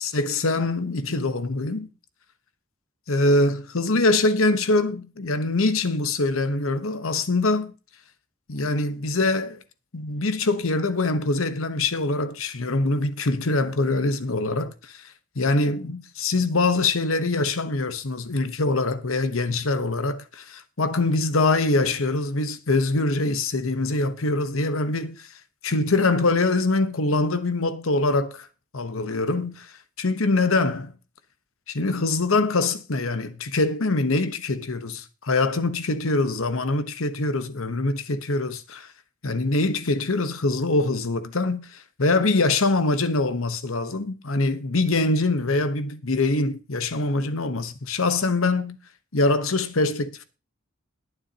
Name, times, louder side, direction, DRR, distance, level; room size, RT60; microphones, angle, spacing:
voice 1, 0.0-1.9 3.1-7.7 8.5-9.6 9.9-15.0 15.3-25.3 25.6-28.5 28.7-29.7 30.0-30.9 31.7-38.9 39.2-48.8 49.1-50.2, left 2 dB, 80° left, 1.1 m, -24 dB
21.0 x 7.3 x 2.9 m
head